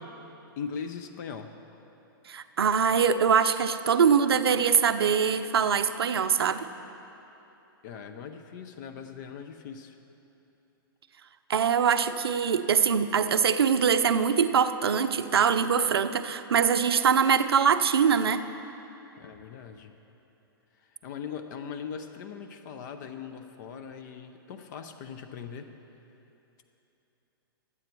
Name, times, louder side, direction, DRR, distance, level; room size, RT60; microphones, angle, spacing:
voice 1, 0.6-1.5 7.8-10.0 19.2-20.0 20.8-25.7, left 6 dB, 50° left, 7 dB, 0.6 m, -40 dB
voice 2, 2.3-6.7 11.5-18.4, right 7 dB, 85° right, 11 dB, 0.5 m, -23 dB
12.0 x 8.3 x 4.5 m, 3.0 s
hypercardioid pair, 120°, 12 cm